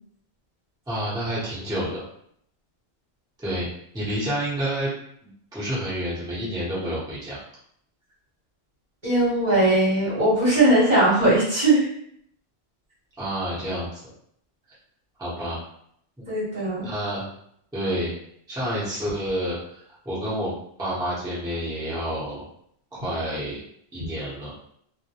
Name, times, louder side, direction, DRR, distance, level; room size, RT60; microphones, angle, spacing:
voice 1, 0.9-2.0 3.4-3.7 3.9-4.9 5.2-7.4 13.2-14.0 15.2-15.6 16.2-16.3 16.8-17.3 17.7-18.1 18.5-20.5 20.8-22.4 22.9-23.6 23.9-24.5, equal, 5° right, -10 dB, 0.7 m, -29 dB
voice 2, 9.0-11.9 16.3-16.9, right 1 dB, 45° right, -9 dB, 1.1 m, -19 dB
2.2 x 2.1 x 2.8 m, 0.69 s
omnidirectional pair, 1.1 m